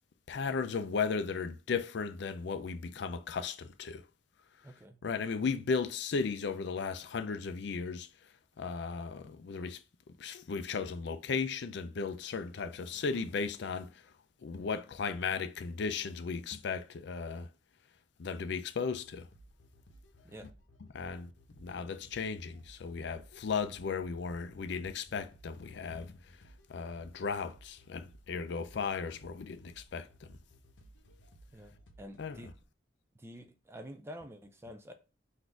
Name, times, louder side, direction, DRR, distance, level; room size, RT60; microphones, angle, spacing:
voice 1, 0.3-4.0 5.0-8.1 8.6-9.8 10.2-14.1 14.4-17.5 18.2-19.3 20.9-21.3 21.6-26.1 26.7-30.4 32.2-32.4, left 5 dB, 65° left, 0.4 m, -36 dB
voice 2, 4.6-5.0 20.2-20.5 31.5-32.5 33.1-34.9, equal, 15° right, 0.4 m, -48 dB
sound 1, 19.0-32.6, right 1 dB, 85° left, 0.9 m, -59 dB
4.1 x 2.6 x 4.5 m
head